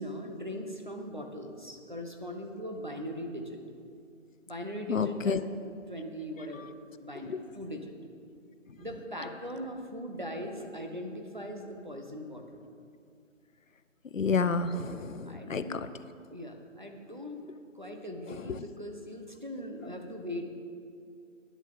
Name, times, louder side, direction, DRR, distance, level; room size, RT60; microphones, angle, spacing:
voice 1, 0.0-3.6 4.5-6.7 7.0-7.9 8.8-12.6 15.3-15.8 16.3-17.4 17.7-20.4, equal, 35° right, 3 dB, 0.8 m, -40 dB
voice 2, 4.9-5.4 7.3-7.4 14.1-15.6 18.3-18.6, left 5 dB, 70° left, 13 dB, 0.6 m, -29 dB
11.0 x 10.5 x 3.6 m, 2.4 s
figure-of-eight pair, 180°, 40 cm